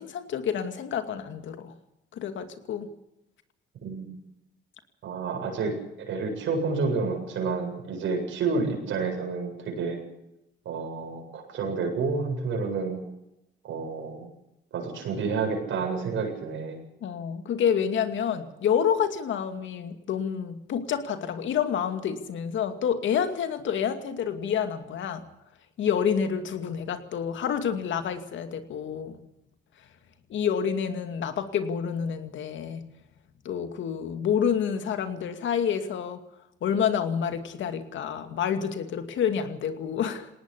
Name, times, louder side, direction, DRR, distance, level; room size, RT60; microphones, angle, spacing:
voice 1, 0.0-1.8 2.1-2.9 17.0-25.2 25.8-29.2 30.3-32.9 33.4-36.2 36.6-40.3, left 8 dB, 70° left, 8 dB, 2.4 m, -28 dB
voice 2, 5.0-10.0 10.6-13.0 13.6-14.3 14.7-16.8, right 4 dB, 75° right, 2 dB, 7.9 m, -29 dB
20.0 x 18.5 x 8.4 m, 0.88 s
cardioid pair, 90°, 20 cm